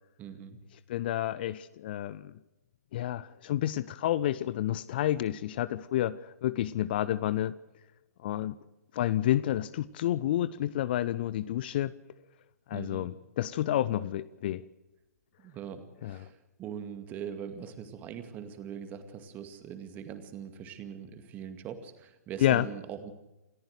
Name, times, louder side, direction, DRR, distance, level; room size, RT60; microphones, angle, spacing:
voice 1, 0.2-0.6 12.7-13.1 15.4-23.1, right 8 dB, 20° right, 9 dB, 2.2 m, -42 dB
voice 2, 0.9-2.3 2.9-7.5 8.2-8.5 8.9-11.9 12.7-14.6 16.0-16.2 22.4-22.7, left 12 dB, 35° left, 18 dB, 0.7 m, -29 dB
28.0 x 14.5 x 6.5 m, 1.0 s
figure-of-eight pair, 125°, 9 cm